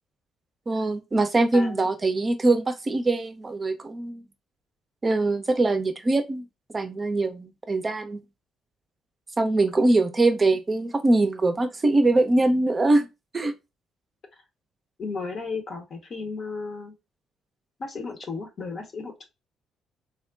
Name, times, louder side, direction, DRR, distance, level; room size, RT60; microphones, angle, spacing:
voice 1, 0.7-4.2 5.0-6.4 6.7-8.2 9.4-13.1 13.3-13.5, right 2 dB, 30° right, 0.5 m, -22 dB
voice 2, 1.5-1.9 9.8-10.0 15.0-16.9 17.8-19.2, left 4 dB, 50° left, 0.8 m, -34 dB
3.5 x 2.1 x 2.2 m
hypercardioid pair, 45°, 0 cm